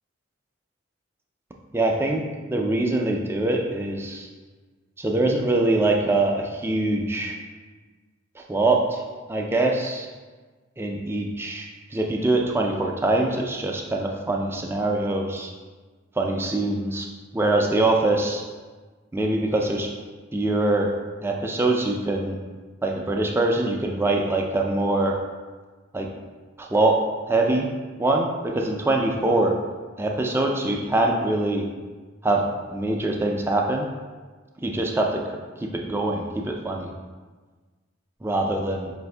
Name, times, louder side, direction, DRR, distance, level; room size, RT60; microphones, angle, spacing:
voice 1, 1.7-2.2 2.5-4.3 5.0-7.4 8.4-9.0 9.3-10.1 10.8-15.5 16.2-17.1 17.3-18.4 19.1-19.9 20.3-20.9 21.2-22.4 22.8-25.2 25.9-26.1 26.6-27.7 28.0-29.6 30.0-31.7 32.2-33.9 34.6-36.9 38.2-38.9, right 2 dB, 10° right, 1 dB, 0.3 m, -23 dB
4.8 x 2.6 x 3.3 m, 1.4 s
head